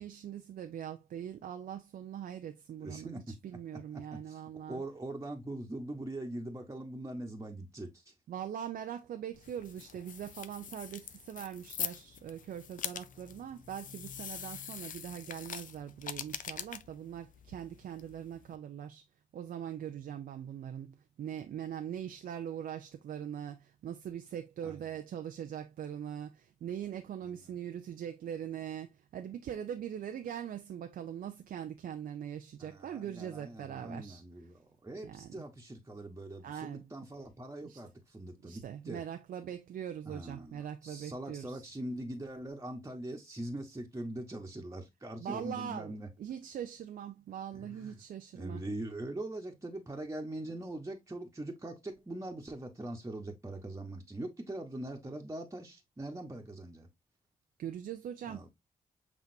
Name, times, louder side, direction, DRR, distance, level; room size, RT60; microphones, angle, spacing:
voice 1, 0.0-4.8 8.3-19.0 19.3-34.2 35.0-35.4 36.4-36.8 37.6-37.8 38.4-41.6 45.2-48.6 57.6-58.5, right 9 dB, 75° right, 0.5 m, -42 dB
voice 2, 2.8-3.2 4.1-4.4 4.7-7.9 24.6-24.8 32.6-39.0 40.0-46.1 47.5-48.0 48.3-56.9 58.3-58.5, right 1 dB, 20° right, 1.2 m, -42 dB
sound 1, 9.3-18.6, left 8 dB, 60° left, 0.5 m, -44 dB
5.9 x 3.4 x 2.6 m
cardioid pair, 55°, 15 cm